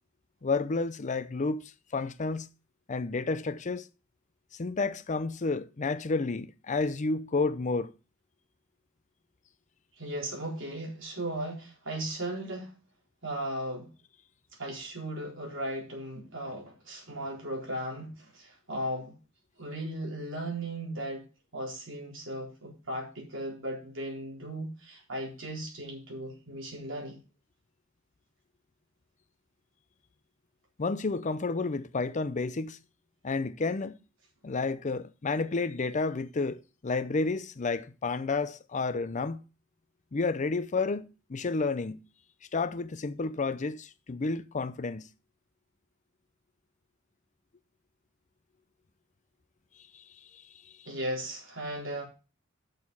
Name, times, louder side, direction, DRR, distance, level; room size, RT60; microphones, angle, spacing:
voice 1, 0.4-1.6 1.9-2.5 2.9-3.9 4.6-7.9 30.8-32.8 33.2-34.0 34.4-39.4 40.1-42.0 42.5-45.1, left 3 dB, 35° left, 0.5 m, -30 dB
voice 2, 10.0-12.7 13.2-13.9 14.6-19.2 19.6-21.3 21.5-27.2 50.9-52.1, right 1 dB, 65° right, 4.1 m, -36 dB
8.5 x 6.6 x 5.4 m
head